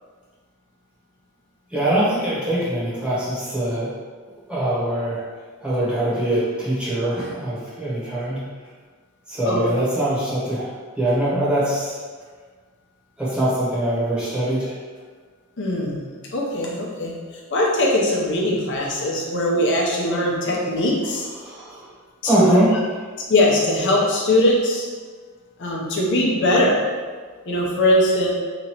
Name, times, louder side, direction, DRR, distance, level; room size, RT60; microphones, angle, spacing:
voice 1, 1.7-3.9 4.5-5.2 5.6-8.4 9.3-12.0 13.2-14.8 21.1-21.9 22.2-22.7, right 1 dB, 5° right, -10 dB, 1.0 m, -23 dB
voice 2, 15.6-17.1 17.5-21.3 22.3-22.6 23.3-24.9 25.6-26.8 27.5-28.3, left 1 dB, 55° left, -3 dB, 0.7 m, -20 dB
3.0 x 2.6 x 4.4 m, 1.5 s
head